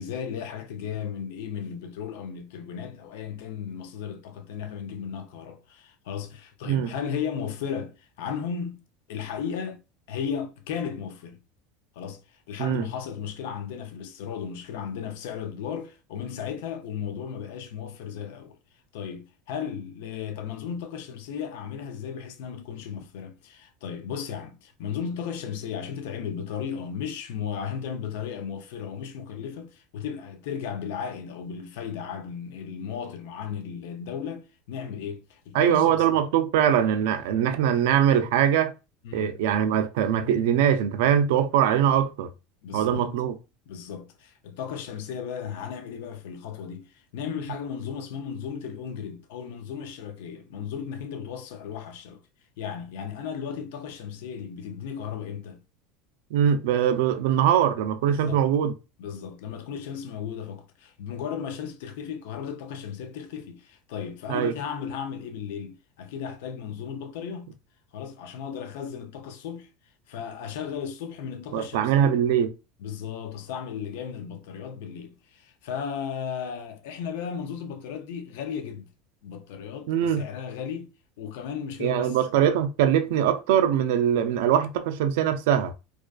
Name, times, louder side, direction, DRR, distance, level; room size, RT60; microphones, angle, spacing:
voice 1, 0.0-9.8 10.1-11.4 11.9-18.6 18.9-36.2 39.0-39.4 42.6-43.1 43.7-52.2 52.6-55.6 58.0-58.4 59.0-67.5 67.9-69.7 70.1-72.2 72.8-78.9 79.2-82.2, left 7 dB, 80° left, 0.4 m, -35 dB
voice 2, 35.5-38.7 39.1-42.3 42.7-43.3 56.3-58.7 64.3-64.5 71.5-72.5 79.9-80.2 81.8-85.7, right 9 dB, 75° right, 0.3 m, -22 dB
2.4 x 2.3 x 2.2 m
supercardioid pair, 135°, 0 cm